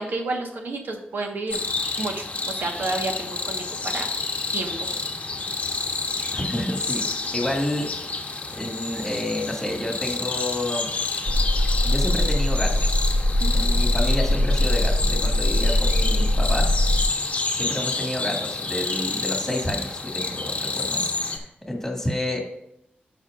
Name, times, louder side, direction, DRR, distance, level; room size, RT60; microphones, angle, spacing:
voice 1, 0.0-1.6 2.0-4.1 4.5-4.9 13.4-13.7, right 2 dB, 65° right, 2 dB, 1.4 m, -30 dB
sound 1, 1.5-21.4, left 3 dB, 35° left, 0.9 m, -29 dB
voice 2, 6.3-7.0 7.3-7.9 8.5-10.9 11.8-13.0 13.5-16.7 17.5-22.4, left 1 dB, 10° left, 0 dB, 2.0 m, -29 dB
sound 2, 11.3-17.0, left 1 dB, 30° right, 0.8 m, -21 dB
12.5 x 5.8 x 2.5 m, 0.79 s
wide cardioid pair, 140°, 4 cm